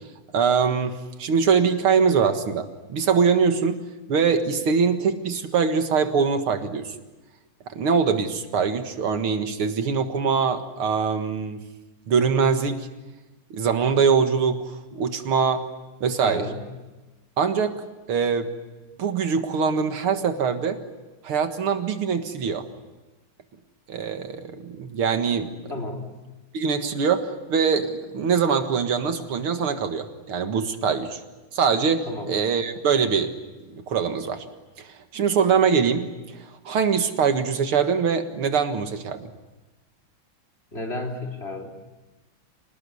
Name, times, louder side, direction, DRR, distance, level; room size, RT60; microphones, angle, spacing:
voice 1, 0.3-3.8 4.1-6.9 7.7-11.6 12.1-12.9 13.5-15.7 16.0-16.5 17.4-17.8 18.1-18.5 19.0-20.8 21.2-22.7 23.9-25.7 26.5-31.2 31.5-33.4 33.7-34.4 34.8-39.3, right 6 dB, 85° right, 7 dB, 2.6 m, -23 dB
voice 2, 16.2-16.6 25.7-26.1 32.1-32.3 40.7-41.7, left 2 dB, 30° left, 3 dB, 4.0 m, -32 dB
27.0 x 19.5 x 9.9 m, 1.1 s
omnidirectional pair, 2.3 m